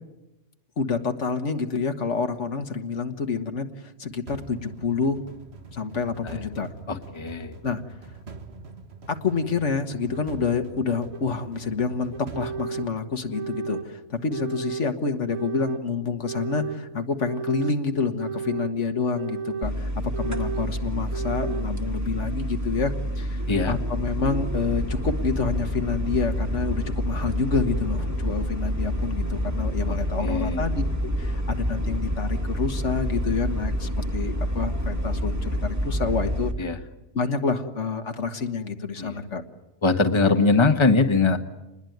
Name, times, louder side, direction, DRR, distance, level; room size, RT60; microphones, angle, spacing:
voice 1, 0.8-5.2 5.7-6.7 7.6-7.8 9.1-23.4 23.7-30.8 31.2-36.5 37.1-39.4, left 4 dB, 75° left, 7 dB, 1.9 m, -28 dB
sound 1, 4.3-13.5, right 3 dB, 60° right, 1.9 m, -44 dB
voice 2, 6.9-7.5 23.5-23.8 29.9-30.0 30.2-30.6 36.6-36.8 39.0-39.2 39.8-41.4, left 3 dB, 25° left, 7 dB, 1.4 m, -22 dB
sound 2, 10.1-10.2 11.1-11.2 12.1-12.9 13.3-13.9 14.3-14.9 15.3-15.8 16.2-16.8 17.2-17.8 18.2-18.7 19.1-19.7 20.1-20.7 21.1-21.7, right 6 dB, 90° right, 1.9 m, -33 dB
sound 3, 19.6-36.5, equal, 15° right, 1.8 m, -28 dB
28.0 x 21.0 x 9.4 m, 0.98 s
omnidirectional pair, 1.3 m